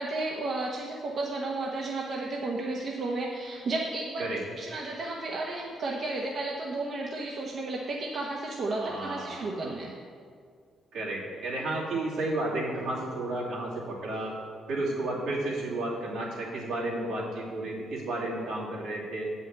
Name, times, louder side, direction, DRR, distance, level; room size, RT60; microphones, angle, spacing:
voice 1, 0.0-9.9, right 2 dB, 55° right, -2 dB, 1.0 m, -33 dB
voice 2, 8.8-9.7 10.9-14.3 14.7-19.3, right 2 dB, 80° right, -6 dB, 2.6 m, -32 dB
7.6 x 5.6 x 7.3 m, 2.1 s
cardioid pair, 90°, 0 cm